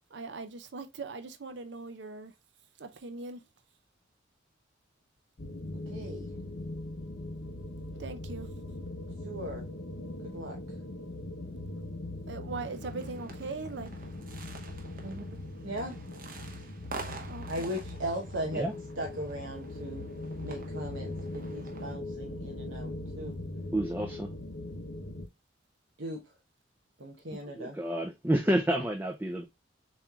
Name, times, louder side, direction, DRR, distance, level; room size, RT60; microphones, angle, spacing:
voice 1, 0.1-2.3 2.8-3.4 8.0-8.5 12.3-13.9 17.3-17.7, right 3 dB, 65° right, 0.6 m, -40 dB
sound 1, 5.4-25.3, left 2 dB, 60° left, 0.8 m, -40 dB
voice 2, 5.9-6.3 9.2-9.7 10.2-10.6 15.0-15.9 17.5-18.7 19.0-20.1 20.4-23.3 26.0-26.2 27.0-27.8, right 1 dB, 80° right, 1.0 m, -38 dB
sound 2, 12.6-22.0, right 3 dB, 45° right, 1.2 m, -48 dB
voice 3, 23.7-24.3 27.6-29.4, right 1 dB, 10° right, 0.4 m, -29 dB
7.0 x 3.1 x 2.3 m
head